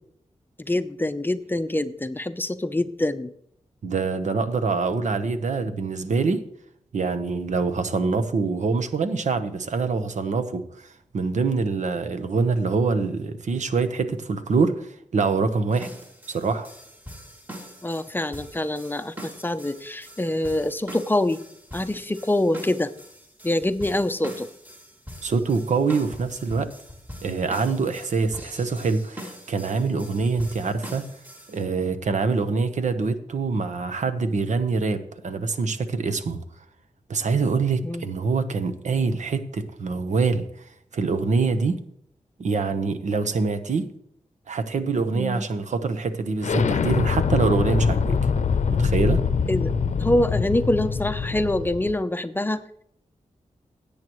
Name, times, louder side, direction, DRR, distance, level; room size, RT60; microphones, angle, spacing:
voice 1, 0.6-3.3 17.8-21.5 21.7-22.9 23.4-24.5 37.8-38.0 45.2-45.4 49.5-49.7 50.0-52.6, left 1 dB, 15° left, 0.6 m, -25 dB
voice 2, 3.8-6.4 6.9-10.9 11.1-15.9 16.3-16.7 25.2-26.7 27.2-31.0 31.5-36.4 37.1-40.7 40.9-41.8 42.4-43.8 44.5-48.2 48.7-49.2, right 4 dB, 80° right, 1.0 m, -25 dB
sound 1, 15.7-31.7, equal, 15° right, 2.6 m, -43 dB
Explosion, 46.4-51.9, left 6 dB, 75° left, 0.6 m, -24 dB
17.0 x 8.5 x 3.1 m
wide cardioid pair, 95°, 12 cm